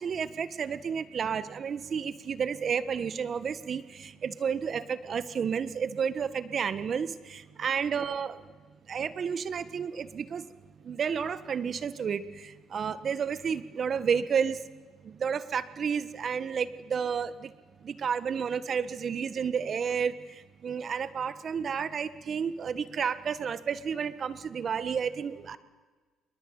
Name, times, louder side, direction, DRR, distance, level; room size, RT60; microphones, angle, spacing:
voice 1, 0.0-8.4 8.9-10.4 10.8-14.6 15.0-17.5 17.8-20.1 20.6-25.6, right 7 dB, 45° right, 14 dB, 1.5 m, -31 dB
27.0 x 22.0 x 8.9 m, 1.3 s
cardioid pair, 90°, 0 cm